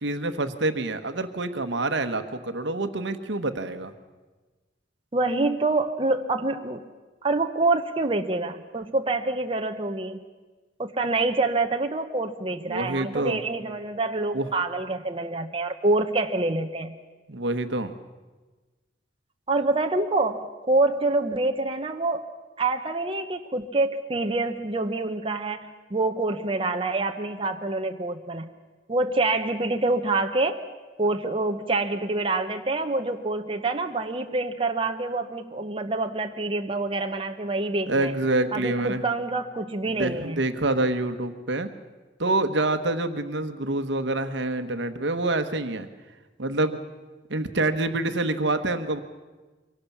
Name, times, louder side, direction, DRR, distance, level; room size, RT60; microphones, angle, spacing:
voice 1, 0.0-3.9 12.7-13.4 14.3-14.5 17.3-17.9 37.9-39.0 40.0-41.7 42.2-45.9 46.4-46.8 47.3-49.0, right 2 dB, 70° right, 9 dB, 1.2 m, -26 dB
voice 2, 5.1-6.8 7.2-10.2 10.8-17.0 19.5-22.3 22.6-28.5 28.9-30.6 31.0-38.1 38.5-40.4, right 2 dB, 30° right, 5 dB, 0.9 m, -26 dB
24.0 x 17.5 x 7.2 m, 1.3 s
head